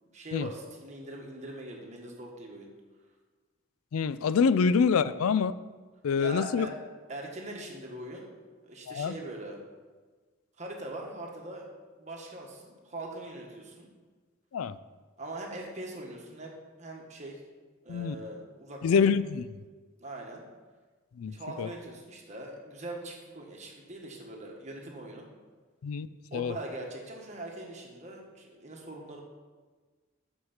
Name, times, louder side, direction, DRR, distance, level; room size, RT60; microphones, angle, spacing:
voice 1, 0.0-2.7 4.5-4.7 6.2-6.7 7.1-8.3 8.6-9.6 10.6-11.7 12.0-13.9 15.2-16.5 16.8-17.4 17.8-19.0 20.0-20.4 21.3-25.3 26.3-29.2, right 1 dB, 35° right, 1.5 m, -41 dB
voice 2, 3.9-5.5 6.0-6.7 8.9-9.1 14.5-14.7 17.9-18.1 18.8-19.4 21.2-21.3 21.6-21.7 25.8-26.1 26.3-26.5, left 6 dB, 85° left, 0.4 m, -25 dB
6.3 x 6.3 x 7.2 m
head